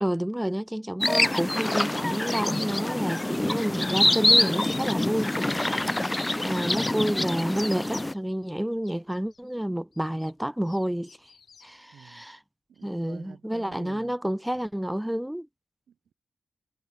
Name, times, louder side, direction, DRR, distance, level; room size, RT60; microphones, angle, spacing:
voice 1, 0.0-5.3 6.4-11.3 11.6-12.4 12.8-15.5, equal, 5° right, 0.9 m, -29 dB
sound 1, 1.0-8.1, left 1 dB, 20° left, 0.4 m, -25 dB
sound 2, 4.3-11.8, left 6 dB, 65° left, 6.2 m, -59 dB
voice 2, 5.6-6.0 11.9-12.3 12.7-14.2 14.5-14.7 15.9-16.1, right 8 dB, 80° right, 1.9 m, -49 dB
cardioid pair, 50°, 0 cm